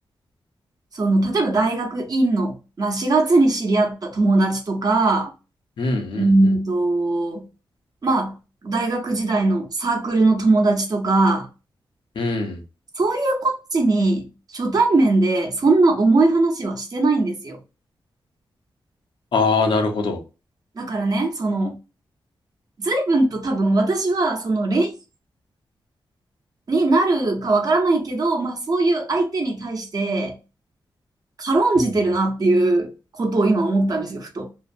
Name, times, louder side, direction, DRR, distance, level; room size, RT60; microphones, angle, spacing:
voice 1, 1.0-5.3 6.1-7.4 8.0-8.4 8.6-11.5 13.0-14.3 14.5-17.6 20.8-21.8 22.8-24.9 26.7-30.4 31.4-34.5, right 2 dB, 50° right, 0.9 m, -20 dB
voice 2, 5.8-6.5 12.2-12.6 19.3-20.2, left 3 dB, 80° left, 0.8 m, -22 dB
2.7 x 2.0 x 2.6 m
wide cardioid pair, 100°, 9 cm